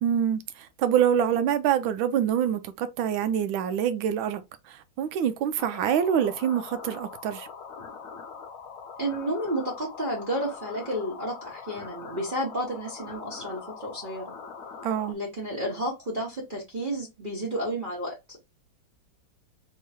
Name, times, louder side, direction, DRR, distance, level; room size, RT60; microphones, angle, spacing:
voice 1, 0.0-7.5 14.8-15.2, right 9 dB, 75° right, 1.3 m, -26 dB
sound 1, 5.6-15.1, left 5 dB, 80° left, 0.7 m, -42 dB
voice 2, 9.0-14.3 15.1-18.4, right 1 dB, 30° right, 1.0 m, -31 dB
3.6 x 3.0 x 4.2 m
omnidirectional pair, 2.3 m